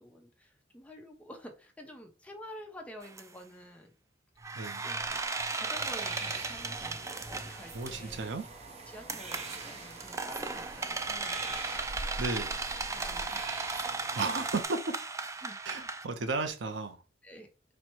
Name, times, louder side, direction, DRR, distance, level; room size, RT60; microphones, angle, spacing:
voice 1, 0.0-3.9 4.8-5.3 5.5-8.4 8.9-11.6 12.9-13.5 15.4-15.6 17.2-17.5, equal, 5° left, 0.8 m, -49 dB
sound 1, 3.0-3.2 4.4-8.2 9.1-16.0, right 3 dB, 15° right, 0.3 m, -36 dB
sound 2, 5.7-14.6, right 3 dB, 35° right, 0.7 m, -46 dB
voice 2, 7.7-8.5 12.2-12.5 14.1-14.9 15.7-17.0, right 3 dB, 75° right, 0.6 m, -34 dB
4.3 x 2.2 x 4.4 m
head